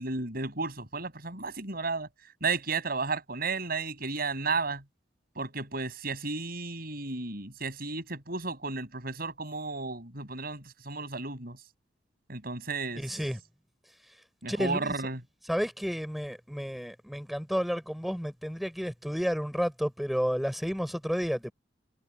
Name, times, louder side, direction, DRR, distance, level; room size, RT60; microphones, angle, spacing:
voice 1, 0.0-2.1 2.4-4.8 5.4-11.6 12.3-13.0 14.4-15.2, right 4 dB, 55° right, 7.2 m, -33 dB
voice 2, 12.9-13.4 14.5-14.9 15.5-21.5, equal, ahead, 5.6 m, -31 dB
head